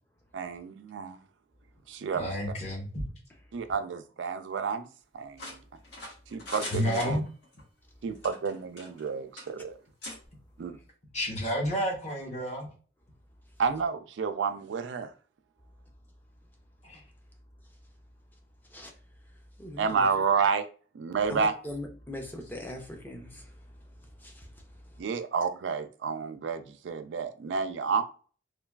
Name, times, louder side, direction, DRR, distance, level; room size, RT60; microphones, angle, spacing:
voice 1, 0.3-1.2 1.9-2.3 3.5-4.9 5.1-5.5 6.3-7.2 8.0-9.8 10.6-10.7 13.6-15.1 19.8-20.7 20.9-21.5 25.0-28.0, right 5 dB, 85° right, 0.4 m, -30 dB
voice 2, 2.1-3.0 6.7-7.2 11.1-12.7 16.8-17.0, equal, 40° left, 0.9 m, -30 dB
sound 1, 5.4-7.6 8.2-9.1 9.4-9.5 10.0-10.2, left 1 dB, 70° left, 1.1 m, -41 dB
voice 3, 19.6-20.1 21.3-25.0, left 1 dB, 10° left, 0.5 m, -42 dB
3.1 x 2.2 x 2.3 m
head